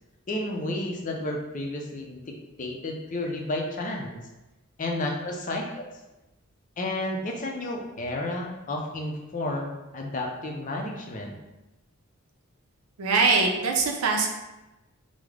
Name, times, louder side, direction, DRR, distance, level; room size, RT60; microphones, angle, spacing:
voice 1, 0.3-4.2 4.8-5.9 6.8-11.3, left 1 dB, 35° left, 1 dB, 0.4 m, -32 dB
voice 2, 13.0-14.3, right 4 dB, 90° right, 2 dB, 0.5 m, -22 dB
3.2 x 2.0 x 3.5 m, 1.0 s
head